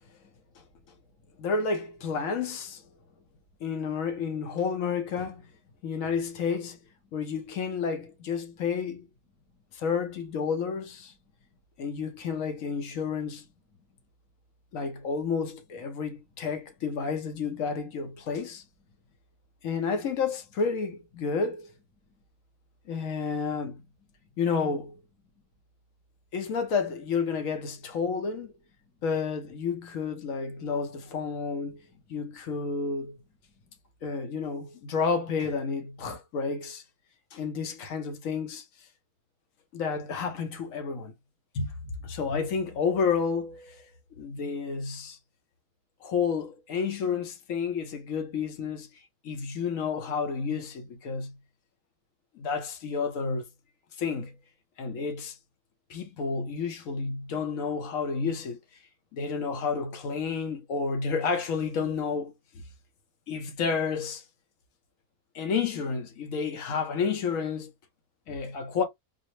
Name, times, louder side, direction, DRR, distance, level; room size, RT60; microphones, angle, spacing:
voice 1, 0.1-0.4 1.2-1.3 3.1-3.4 7.0-7.1 9.3-9.6 11.2-11.6 13.5-14.0 18.9-19.0 22.0-22.2 24.2-24.4 25.3-25.4 28.8-29.0 32.0-32.1 33.4-33.8, left 3 dB, 80° left, 2.1 m, -66 dB
voice 2, 1.4-2.8 3.6-5.5 5.8-6.8 7.1-9.1 9.7-11.1 11.8-13.5 14.7-18.6 19.6-21.7 22.9-23.8 24.4-25.0 26.3-28.6 29.0-31.8 32.1-33.2 34.0-36.8 37.3-38.9 39.7-41.1 41.5-43.9 44.2-45.2 46.0-48.9 49.2-51.3 52.3-53.5 54.0-54.3 54.8-55.4 55.9-58.6 59.1-62.3 63.3-64.2 65.3-67.7 68.3-68.8, left 5 dB, 60° left, 1.0 m, -30 dB
4.2 x 2.0 x 3.0 m
omnidirectional pair, 1.7 m